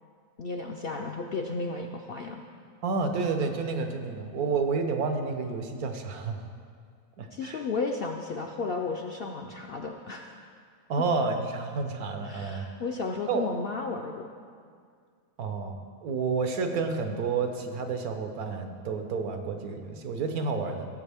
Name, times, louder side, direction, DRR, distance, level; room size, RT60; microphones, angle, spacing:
voice 1, 0.4-2.4 7.3-10.4 12.2-14.3, left 4 dB, 65° left, 2 dB, 0.6 m, -33 dB
voice 2, 2.8-6.4 7.2-7.6 10.9-12.7 13.3-13.4 15.4-20.8, right 4 dB, 85° right, 5 dB, 1.3 m, -30 dB
15.5 x 7.2 x 3.5 m, 2.1 s
omnidirectional pair, 1.5 m